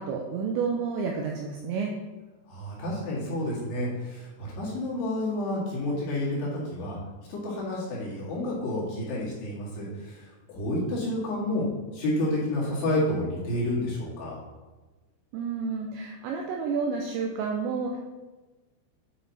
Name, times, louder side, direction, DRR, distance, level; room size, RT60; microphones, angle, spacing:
voice 1, 0.0-1.9 15.3-18.0, right 5 dB, 80° right, 1 dB, 2.6 m, -30 dB
voice 2, 2.5-7.0 7.3-10.2 10.5-11.6 11.9-14.4, left 1 dB, 60° left, -6 dB, 3.8 m, -30 dB
9.5 x 5.6 x 4.1 m, 1.2 s
omnidirectional pair, 5.8 m